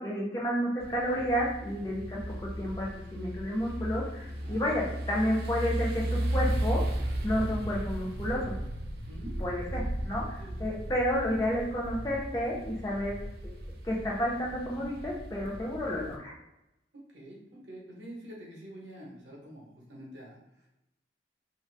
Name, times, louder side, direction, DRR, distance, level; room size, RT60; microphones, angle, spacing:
voice 1, 0.0-2.2 2.6-6.8 7.2-8.5 9.4-13.1 13.8-16.3, equal, 20° left, -3 dB, 0.5 m, -31 dB
sound 1, 0.8-16.2, right 1 dB, 55° right, 0.4 m, -35 dB
voice 2, 4.4-4.9 9.1-9.4 9.7-9.9 10.4-10.7 16.9-20.7, equal, 90° right, -3 dB, 1.0 m, -47 dB
2.6 x 2.4 x 3.2 m, 0.88 s
head